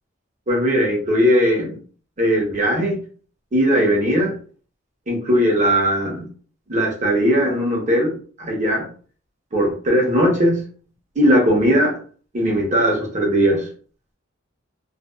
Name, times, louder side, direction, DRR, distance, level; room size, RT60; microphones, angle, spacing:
voice 1, 0.5-1.8 2.2-3.0 3.5-4.3 5.1-6.3 6.7-8.9 9.5-10.6 11.2-12.0 12.3-13.7, equal, 40° right, -1 dB, 0.8 m, -18 dB
2.6 x 2.2 x 2.3 m, 0.42 s
head